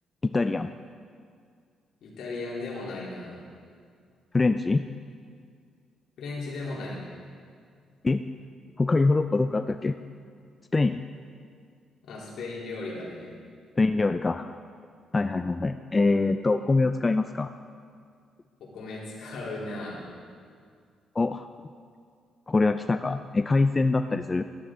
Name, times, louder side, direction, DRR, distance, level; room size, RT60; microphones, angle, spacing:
voice 1, 0.2-0.7 4.3-4.8 8.0-8.2 8.8-10.0 10.7-11.0 13.8-14.5 15.1-17.5 21.2-21.5 22.5-24.4, left 3 dB, 25° left, 9 dB, 0.4 m, -24 dB
voice 2, 2.0-3.4 6.2-7.0 12.0-13.3 18.6-20.0, left 2 dB, 75° left, -5 dB, 3.3 m, -36 dB
13.5 x 12.0 x 3.8 m, 2.1 s
cardioid pair, 90°, 0 cm